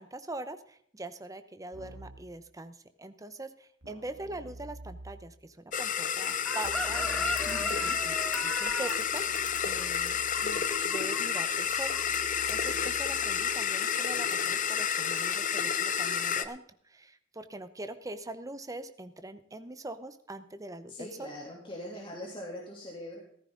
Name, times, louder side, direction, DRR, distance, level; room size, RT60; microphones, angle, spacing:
voice 1, 0.0-7.3 7.8-12.0 12.5-21.3, right 2 dB, 15° right, 10 dB, 0.8 m, -43 dB
Keyboard (musical), 1.7-2.4 3.8-5.4 6.6-13.7, right 1 dB, 90° right, 1.8 m, -49 dB
sound 1, 5.7-16.5, left 7 dB, 40° left, 0.8 m, -30 dB
Chicken rooster, 6.5-11.4 11.7-12.0, left 1 dB, 5° left, 0.4 m, -36 dB
voice 2, 7.4-8.0 20.9-23.2, left 1 dB, 25° left, -3 dB, 2.9 m, -42 dB
15.5 x 13.5 x 3.8 m, 0.64 s
head